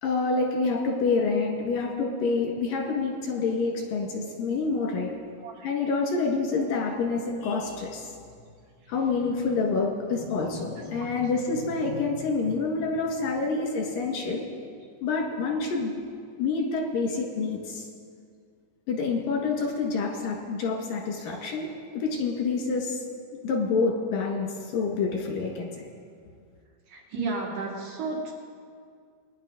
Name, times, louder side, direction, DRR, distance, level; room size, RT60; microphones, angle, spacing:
voice 1, 0.0-5.1 5.6-8.1 8.9-14.4 15.0-15.9 16.3-17.9 18.9-21.7 21.9-23.0 23.4-25.9, left 4 dB, 85° left, 0 dB, 3.5 m, -27 dB
voice 2, 26.9-28.3, right 3 dB, 75° right, -1 dB, 3.5 m, -33 dB
21.0 x 10.5 x 4.0 m, 2.2 s
omnidirectional pair, 3.8 m